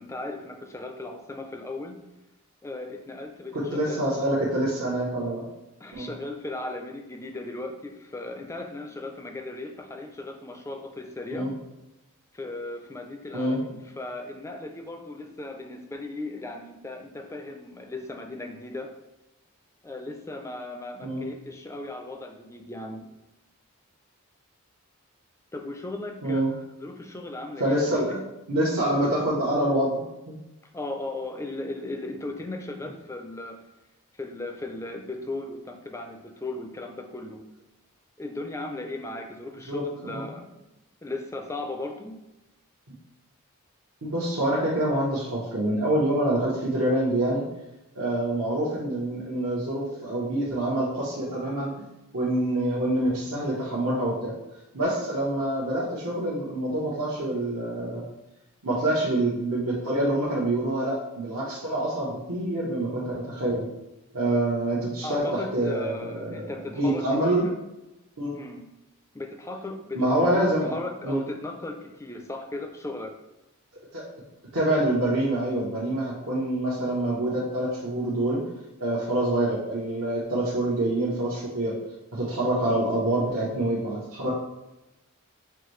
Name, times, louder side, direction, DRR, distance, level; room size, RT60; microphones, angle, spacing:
voice 1, 0.0-2.0 2.6-4.1 5.8-11.5 12.3-18.9 19.8-23.1 25.5-27.7 28.1-28.2 28.9-29.3 30.7-33.6 34.1-37.4 38.2-40.7 41.0-42.2 65.0-67.5 68.3-68.7 69.1-70.0 70.3-73.1, left 2 dB, 15° left, 4 dB, 0.4 m, -37 dB
voice 2, 3.5-5.4 5.9-6.1 11.3-11.5 13.3-13.6 21.0-21.2 26.2-26.5 27.6-28.2 28.5-29.9 30.3-30.4 39.7-39.8 40.1-40.3 44.0-47.4 48.0-51.7 52.1-54.3 54.7-58.0 58.6-63.7 64.1-67.4 68.2-68.3 69.9-70.7 71.0-71.2 73.9-74.0 74.5-78.4 78.8-81.8 82.1-84.3, right 1 dB, 75° right, -6 dB, 0.9 m, -26 dB
5.6 x 2.6 x 3.1 m, 0.96 s
head